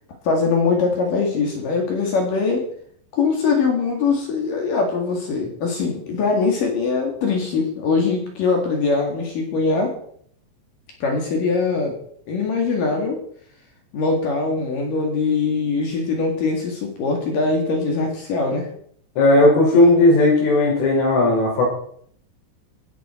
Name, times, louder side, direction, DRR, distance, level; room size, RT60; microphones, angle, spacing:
voice 1, 0.2-2.7 3.1-9.9 11.0-12.0 12.3-13.2 13.9-18.7, left 4 dB, 55° left, 2 dB, 3.2 m, -22 dB
voice 2, 19.2-21.7, left 2 dB, 90° left, -2 dB, 8.0 m, -15 dB
17.0 x 10.0 x 4.5 m, 0.64 s
omnidirectional pair, 5.5 m